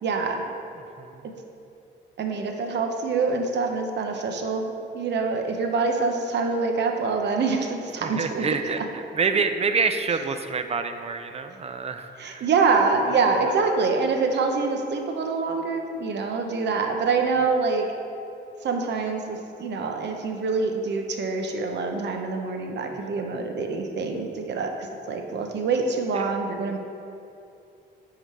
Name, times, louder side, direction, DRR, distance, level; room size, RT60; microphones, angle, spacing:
voice 1, 0.0-0.4 2.2-8.5 9.3-9.4 12.2-17.9 18.6-26.8, right 4 dB, 60° right, 4 dB, 0.9 m, -25 dB
voice 2, 8.0-12.5 13.1-13.2 22.9-23.0 26.1-26.2, right 5 dB, 30° right, 8 dB, 0.5 m, -27 dB
9.9 x 3.9 x 4.8 m, 2.7 s
cardioid pair, 90°, 20 cm